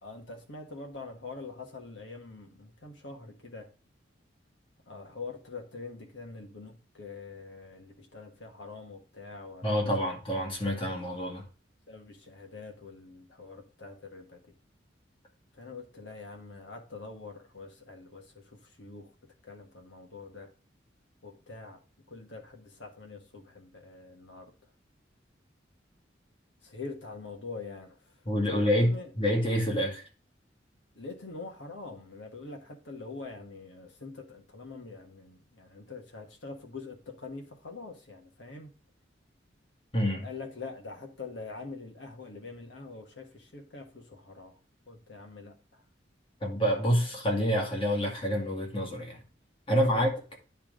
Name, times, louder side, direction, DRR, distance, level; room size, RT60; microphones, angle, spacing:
voice 1, 0.0-3.7 4.9-10.1 11.9-14.4 15.6-19.1 19.4-20.5 21.2-21.8 22.1-24.5 26.6-28.1 28.5-29.1 30.9-38.7 40.1-44.6 44.9-45.8 49.7-50.0, left 3 dB, 80° left, 2 dB, 1.5 m, -44 dB
voice 2, 9.6-11.5 28.3-30.0 39.9-40.3 46.4-49.2 49.7-50.1, equal, 30° left, 1 dB, 1.9 m, -27 dB
10.0 x 3.5 x 3.7 m, 0.36 s
head